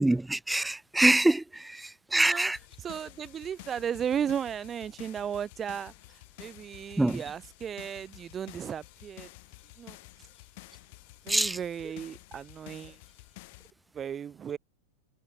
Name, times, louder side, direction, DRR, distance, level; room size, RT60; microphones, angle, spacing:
voice 1, 0.0-2.6 7.0-7.2 11.3-11.6, right 2 dB, 5° right, 0.6 m, -25 dB
voice 2, 2.1-2.5 2.8-9.3 9.8-10.0 11.2-13.0 13.9-14.6, right 8 dB, 25° right, 3.1 m, -35 dB
sound 1, 2.5-13.7, left 23 dB, 50° left, 3.6 m, -51 dB
figure-of-eight pair, 95°, 0 cm